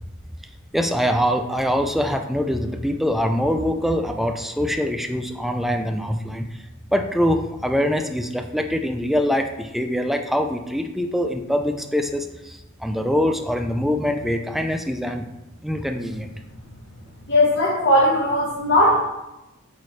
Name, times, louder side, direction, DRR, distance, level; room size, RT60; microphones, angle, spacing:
voice 1, 0.7-6.4 6.9-15.2 15.6-16.3, equal, ahead, 5 dB, 0.4 m, -23 dB
voice 2, 17.3-19.0, left 1 dB, 55° left, -6 dB, 1.2 m, -18 dB
8.2 x 4.7 x 3.2 m, 0.96 s
head